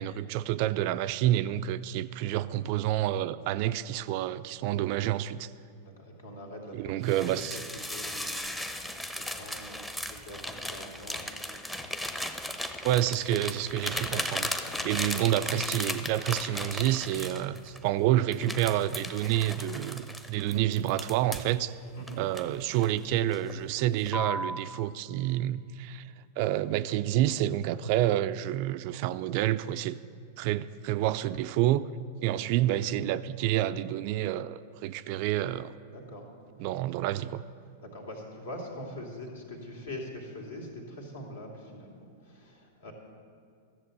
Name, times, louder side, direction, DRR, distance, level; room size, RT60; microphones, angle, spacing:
voice 1, 0.0-5.5 6.7-7.6 12.8-14.5 14.8-21.7 22.2-30.0 30.4-31.8 32.2-35.7 36.6-37.4, right 13 dB, 45° right, 13 dB, 0.4 m, -28 dB
voice 2, 5.8-12.3 14.6-15.1 21.9-22.2 32.3-32.5 35.9-36.3 37.8-42.9, left 1 dB, 70° left, 1 dB, 2.5 m, -44 dB
sound 1, 7.0-17.8 18.3-21.5 22.1-23.0 23.3-23.6 24.1-24.6, left 1 dB, 5° left, 0.8 m, -36 dB
13.5 x 7.4 x 7.9 m, 2.3 s
figure-of-eight pair, 95°, 0 cm